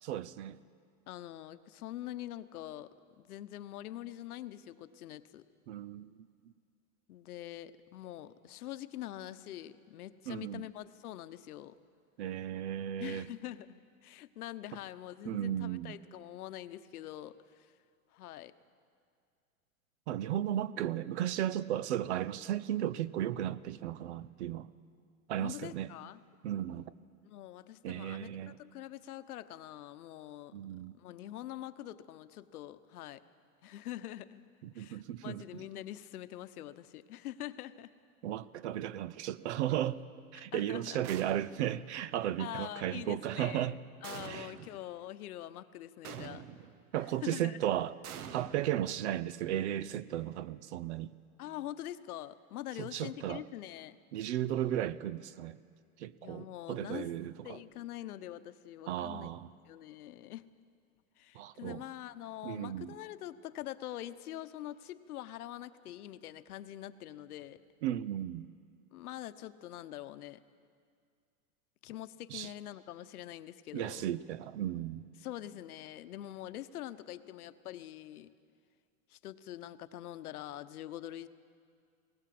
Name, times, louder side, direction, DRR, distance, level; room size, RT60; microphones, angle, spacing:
voice 1, 0.0-0.6 5.7-6.5 10.3-10.6 12.2-13.3 15.3-16.0 20.1-24.7 25.3-25.9 26.4-26.9 27.8-28.5 30.5-31.0 34.6-35.6 38.2-40.0 40.3-43.8 44.3-44.5 46.9-47.9 48.3-51.1 52.8-53.4 54.1-55.6 56.0-57.6 58.9-59.5 61.3-61.8 62.4-63.0 67.8-68.5 72.3-72.5 73.7-75.1, right 11 dB, 50° right, 0.6 m, -35 dB
voice 2, 1.1-5.4 7.1-11.7 13.0-17.7 18.1-18.5 25.4-26.2 27.2-28.3 28.5-30.5 30.9-33.2 33.6-34.4 34.7-37.9 40.3-41.0 42.4-46.5 47.2-47.6 51.4-54.0 56.2-57.1 57.4-59.3 59.7-60.5 61.2-67.6 68.9-70.4 71.8-74.1 75.2-78.3 79.1-81.3, left 13 dB, 85° left, 1.0 m, -44 dB
sound 1, 41.0-41.8 44.0-44.8 46.0-46.8 48.0-49.3, right 8 dB, 85° right, 1.3 m, -46 dB
19.5 x 18.0 x 7.7 m
supercardioid pair, 170°, 43 cm